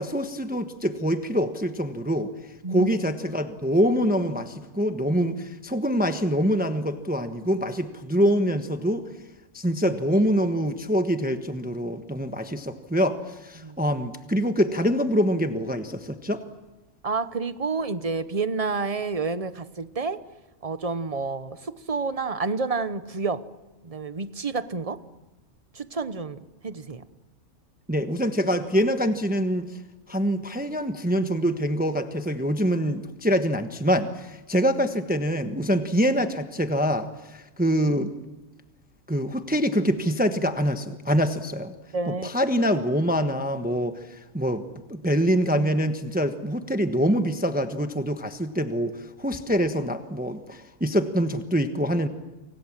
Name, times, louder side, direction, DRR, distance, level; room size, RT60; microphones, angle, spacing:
voice 1, 0.0-2.3 2.7-9.1 9.5-16.4 27.9-29.7 30.1-38.1 39.1-41.7 42.1-44.6 44.9-52.1, equal, 5° right, 7 dB, 1.1 m, -25 dB
voice 2, 2.6-3.0 13.6-13.8 17.0-20.2 20.6-23.4 23.8-25.0 25.7-27.0 41.9-42.3, right 4 dB, 30° right, 13 dB, 1.0 m, -29 dB
29.5 x 25.0 x 7.5 m, 1.1 s
omnidirectional pair, 1.3 m